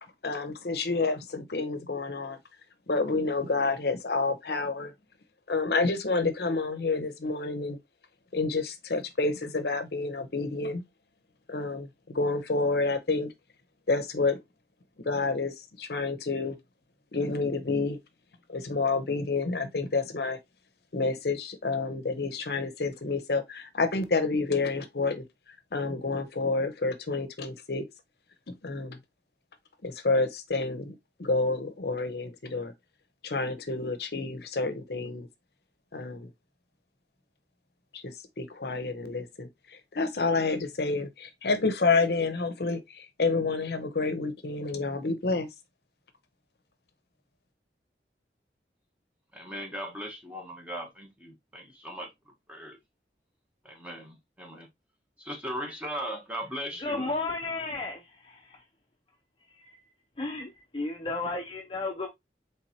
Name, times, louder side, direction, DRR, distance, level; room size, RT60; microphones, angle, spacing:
voice 1, 0.2-2.4 2.9-4.9 5.5-7.8 8.3-10.8 11.5-13.3 13.9-14.4 15.0-16.6 17.1-18.0 18.5-20.4 20.9-25.2 25.7-27.8 28.5-29.0 29.8-30.9 31.2-32.7 33.2-35.3 35.9-36.3 37.9-45.5, left 3 dB, 60° left, 0.7 m, -29 dB
voice 2, 49.3-52.1 52.5-52.8 53.6-54.7 55.2-57.1, equal, 10° right, 1.2 m, -38 dB
voice 3, 56.8-58.6 59.5-59.6 60.2-62.1, left 2 dB, 30° left, 0.6 m, -33 dB
4.5 x 3.4 x 2.8 m
head